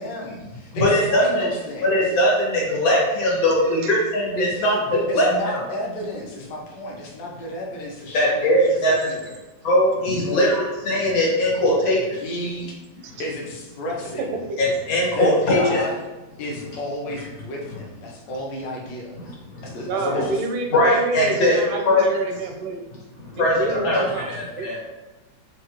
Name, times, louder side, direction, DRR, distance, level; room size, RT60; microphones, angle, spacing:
voice 1, 0.0-1.9 4.3-9.4 10.1-10.4 12.1-12.7 13.2-14.3 15.1-16.0 16.4-19.3 19.6-20.4 21.2-21.4, left 1 dB, 65° left, -2 dB, 1.2 m, -32 dB
voice 2, 0.7-1.5 1.8-4.8 5.1-5.6 8.1-8.9 9.6-12.0 14.6-15.8 20.0-20.2 20.7-21.6 21.9-22.0 23.4-24.9, left 1 dB, 85° left, -5 dB, 2.0 m, -20 dB
voice 3, 3.3-4.0 13.0-13.2 14.2-14.6 19.9-22.8 23.3-24.3 24.6-24.7, right 2 dB, 85° right, 3 dB, 1.4 m, -29 dB
4.9 x 2.4 x 2.9 m, 1.1 s
omnidirectional pair, 2.1 m